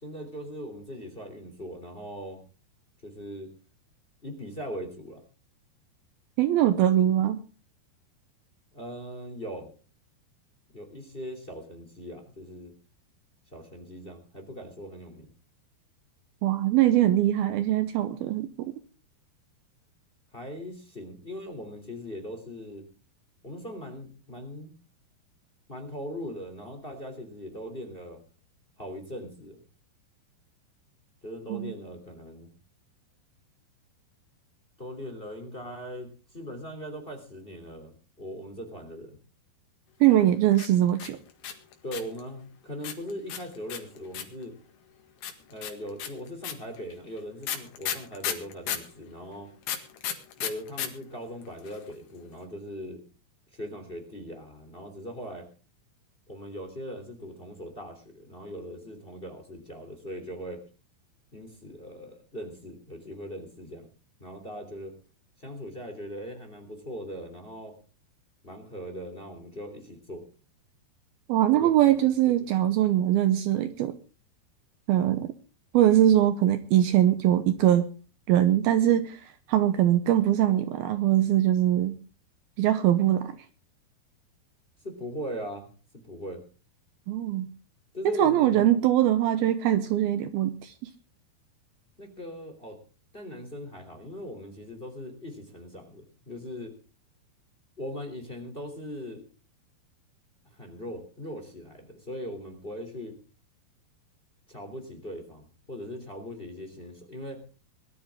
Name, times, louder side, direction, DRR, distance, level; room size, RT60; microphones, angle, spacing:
voice 1, 0.0-2.4 3.0-3.5 4.2-5.2 8.7-9.7 10.7-12.7 13.5-15.3 20.3-22.8 23.4-24.7 25.7-28.2 28.8-29.6 31.2-32.5 34.8-39.2 41.8-44.5 45.5-49.5 50.4-53.0 53.5-55.5 56.3-60.6 61.3-63.9 64.2-64.9 65.4-67.7 68.4-70.2 71.5-72.0 72.4-72.6 84.8-85.7 85.9-86.4 87.9-88.7 92.0-92.8 93.1-96.7 97.8-99.2 100.6-103.1 104.5-107.4, equal, 15° left, 5 dB, 2.7 m, -40 dB
voice 2, 6.4-7.4 16.4-18.5 31.5-31.7 40.0-41.2 71.3-73.9 74.9-75.3 75.7-77.8 78.3-79.2 79.5-82.0 82.6-83.3 87.1-87.5 88.2-90.7, right 12 dB, 75° right, 10 dB, 2.5 m, -22 dB
sound 1, 40.5-42.2 42.8-44.4 45.2-48.9 49.6-50.9 51.1-51.2 51.4-51.9, left 9 dB, 70° left, 3.8 m, -33 dB
21.0 x 13.0 x 3.7 m, 0.36 s
omnidirectional pair, 4.9 m